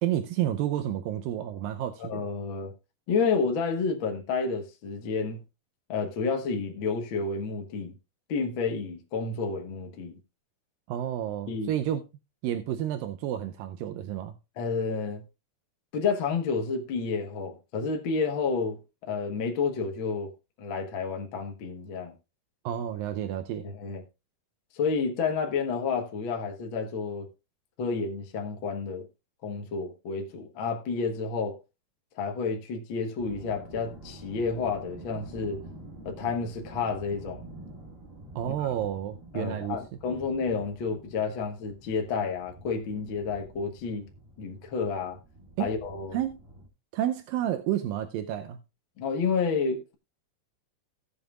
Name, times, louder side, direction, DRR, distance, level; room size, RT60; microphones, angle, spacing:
voice 1, 0.0-2.2 10.9-12.0 12.4-14.4 22.6-23.7 38.4-39.8 45.6-45.7 46.1-46.4 46.9-48.6, right 11 dB, 80° right, 2.4 m, -30 dB
voice 2, 2.0-2.7 3.1-5.4 5.9-7.9 8.3-10.2 11.5-11.7 14.6-15.2 15.9-18.8 19.1-20.3 20.6-22.1 23.6-24.0 24.7-27.3 27.8-29.0 29.4-31.6 32.2-35.6 36.0-37.4 38.5-38.7 39.3-44.0 44.4-45.2 45.6-46.2 49.0-49.9, left 5 dB, 55° left, 1.4 m, -30 dB
sound 1, 33.2-46.7, right 2 dB, 40° right, 0.8 m, -48 dB
17.5 x 7.1 x 2.4 m
omnidirectional pair, 4.0 m